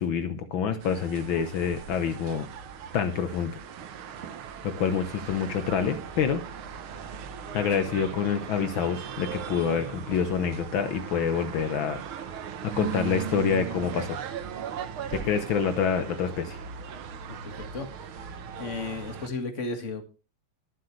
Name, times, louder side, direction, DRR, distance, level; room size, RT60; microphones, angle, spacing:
voice 1, 0.0-2.5 2.9-3.6 4.6-6.4 7.5-12.0 12.6-14.2 15.1-16.6, left 7 dB, 75° left, 9 dB, 1.8 m, -27 dB
sound 1, 0.8-19.3, right 8 dB, 90° right, 2.0 m, -38 dB
voice 2, 17.3-18.3 18.6-20.0, left 3 dB, 35° left, 6 dB, 2.2 m, -35 dB
22.0 x 7.9 x 3.3 m, 0.32 s
omnidirectional pair, 2.3 m